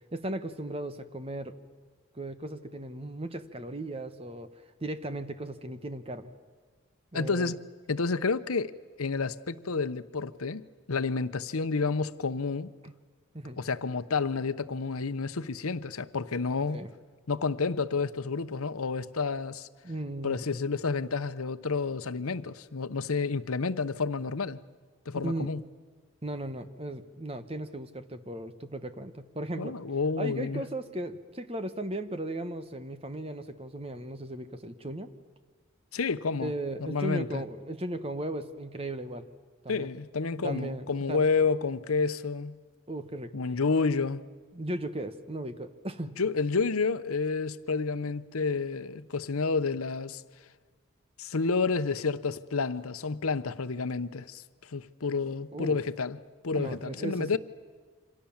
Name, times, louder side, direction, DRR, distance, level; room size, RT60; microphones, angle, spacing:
voice 1, 0.1-1.6 2.1-4.5 4.8-6.3 7.1-7.5 12.8-12.9 13.3-13.6 16.7-16.9 19.8-20.4 25.2-25.5 26.2-29.8 30.2-35.1 36.4-39.3 39.6-39.9 40.4-41.2 42.9-43.3 44.5-46.2 55.5-55.8 56.5-57.4, right 1 dB, 25° right, 1.2 m, -36 dB
voice 2, 7.1-7.6 7.9-8.7 9.0-12.7 13.6-16.9 17.3-19.7 20.2-24.6 25.1-25.6 29.6-30.6 35.9-36.5 36.8-37.4 39.7-42.6 43.3-44.2 46.2-50.2 51.2-56.2 56.4-57.4, left 4 dB, 90° left, 0.9 m, -30 dB
28.0 x 26.0 x 7.3 m
head